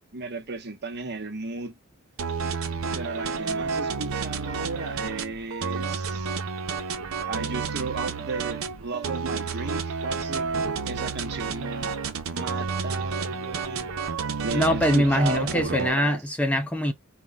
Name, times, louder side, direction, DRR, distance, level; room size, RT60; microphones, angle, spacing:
voice 1, 0.0-1.8 2.9-6.4 7.2-10.5 10.9-12.0 12.3-13.9 14.4-16.2, right 3 dB, 55° right, 0.9 m, -34 dB
sound 1, 2.2-15.9, right 5 dB, 80° right, 0.8 m, -30 dB
voice 2, 14.5-16.9, equal, 5° left, 0.6 m, -23 dB
4.5 x 2.2 x 3.8 m
head